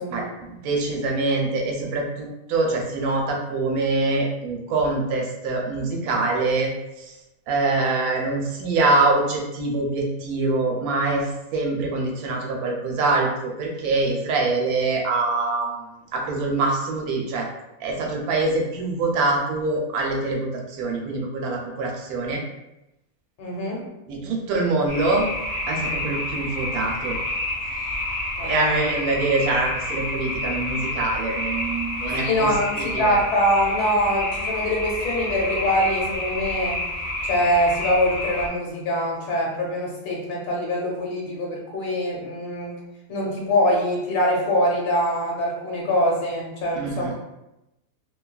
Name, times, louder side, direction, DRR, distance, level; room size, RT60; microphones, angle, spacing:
voice 1, 0.1-6.7 7.0-7.2 7.5-15.8 16.1-17.5 17.8-22.4 24.1-25.2 25.7-27.2 28.4-33.2 46.7-47.1, right 3 dB, 75° right, 0 dB, 1.0 m, -24 dB
voice 2, 23.4-23.8 28.4-28.8 32.1-36.8 37.2-42.7 43.1-47.1, equal, 90° left, -2 dB, 1.3 m, -23 dB
sound 1, 24.9-38.5, left 1 dB, 35° right, 0.6 m, -29 dB
2.7 x 2.3 x 2.3 m, 0.92 s
omnidirectional pair, 1.6 m